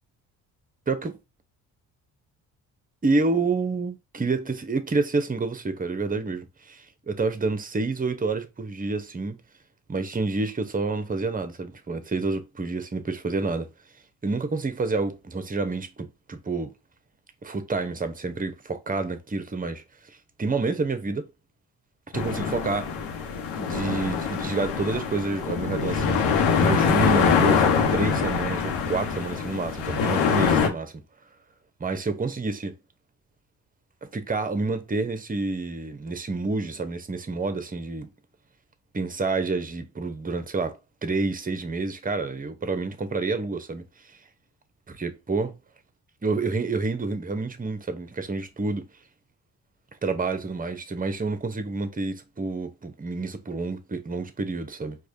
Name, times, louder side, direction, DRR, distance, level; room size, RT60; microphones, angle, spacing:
voice 1, 3.0-9.4 9.9-13.7 14.2-16.7 17.4-21.3 22.1-22.9 23.6-27.7 27.9-30.9 31.8-32.7 34.1-38.1 38.9-40.8 41.0-44.2 44.9-45.5 46.2-48.9 50.0-55.0, right 3 dB, 20° right, 0.9 m, -28 dB
sound 1, 22.1-30.7, left 6 dB, 65° left, 1.0 m, -24 dB
4.7 x 2.4 x 2.7 m
hypercardioid pair, 45°, 47 cm